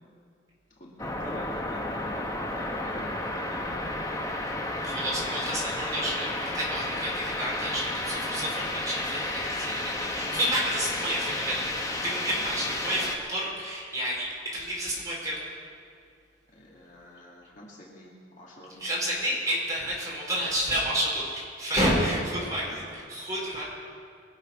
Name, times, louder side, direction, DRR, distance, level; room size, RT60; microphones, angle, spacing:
voice 1, 0.8-3.9 16.5-19.0 21.9-22.9, left 1 dB, 40° left, -4 dB, 2.3 m, -45 dB
sound 1, 1.0-13.2, left 1 dB, 20° left, 1.1 m, -32 dB
voice 2, 4.8-15.4 18.8-23.6, equal, 20° right, -6 dB, 4.6 m, -30 dB
23.0 x 7.9 x 6.1 m, 2.2 s
head